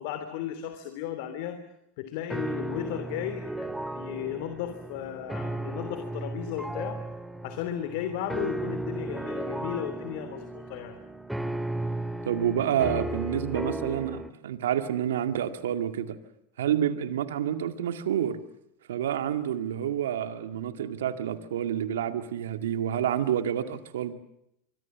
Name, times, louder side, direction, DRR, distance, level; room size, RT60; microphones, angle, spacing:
voice 1, 0.0-1.6 2.0-7.0 7.4-11.0, left 10 dB, 65° left, 9 dB, 3.2 m, -35 dB
sound 1, 2.3-14.3, right 1 dB, 5° right, 2.3 m, -35 dB
voice 2, 12.3-16.2 16.6-18.4 18.9-24.1, right 10 dB, 80° right, 9 dB, 2.2 m, -28 dB
25.0 x 25.0 x 7.4 m, 0.79 s
hypercardioid pair, 90°, 0 cm